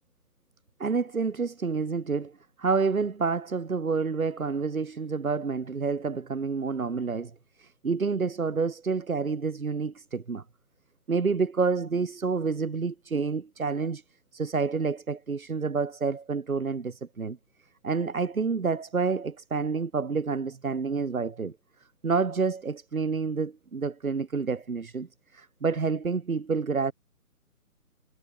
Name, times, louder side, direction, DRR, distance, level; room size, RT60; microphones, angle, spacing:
voice 1, 0.8-10.4 11.1-14.0 14.3-17.4 17.8-21.6 22.0-26.9, right 4 dB, 65° right, 2.6 m, -28 dB
figure-of-eight pair, 145°, 45 cm